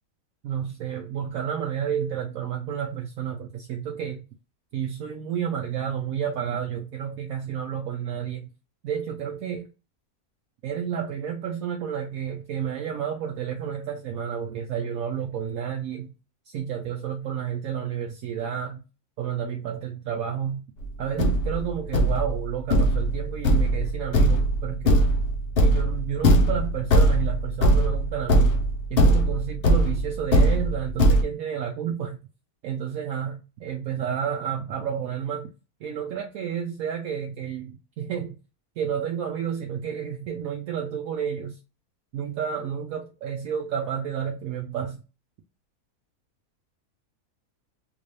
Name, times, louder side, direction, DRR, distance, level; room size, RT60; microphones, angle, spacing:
voice 1, 0.4-4.3 4.7-8.5 8.8-9.7 10.6-16.1 16.5-18.8 19.2-20.6 21.0-25.1 25.6-28.6 28.9-32.2 32.6-35.5 35.8-38.4 38.8-41.6 42.1-45.0, right 8 dB, 70° right, 1.0 m, -31 dB
Thump thud, 20.8-20.9 21.2-31.2, right 1 dB, 60° left, 0.6 m, -21 dB
3.6 x 2.6 x 3.1 m
omnidirectional pair, 1.6 m